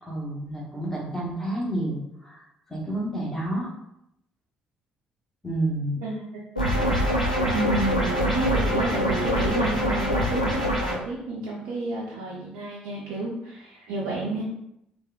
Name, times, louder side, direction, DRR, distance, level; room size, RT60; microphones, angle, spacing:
voice 1, 0.0-2.4 2.7-3.7 5.4-6.0, right 1 dB, 10° left, -5 dB, 1.2 m, -29 dB
voice 2, 6.0-6.4 7.5-14.4, right 2 dB, 60° right, -4 dB, 0.5 m, -31 dB
sound 1, 6.6-10.9, equal, 90° left, 0.4 m, -24 dB
3.4 x 2.5 x 2.2 m, 0.79 s
figure-of-eight pair, 50°, 4 cm